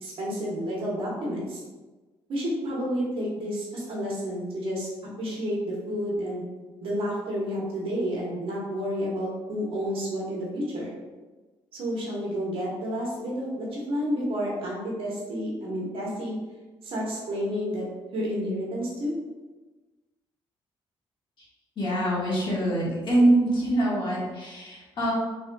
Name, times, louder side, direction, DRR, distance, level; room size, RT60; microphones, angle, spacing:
voice 1, 0.0-1.6 2.3-4.9 5.2-6.5 6.8-10.9 11.7-16.4 16.8-17.9 18.1-19.1, equal, 65° right, -5 dB, 1.0 m, -30 dB
voice 2, 21.8-25.1, right 1 dB, 55° left, -7 dB, 1.5 m, -24 dB
3.8 x 3.1 x 2.2 m, 1.2 s
cardioid pair, 110°, 10 cm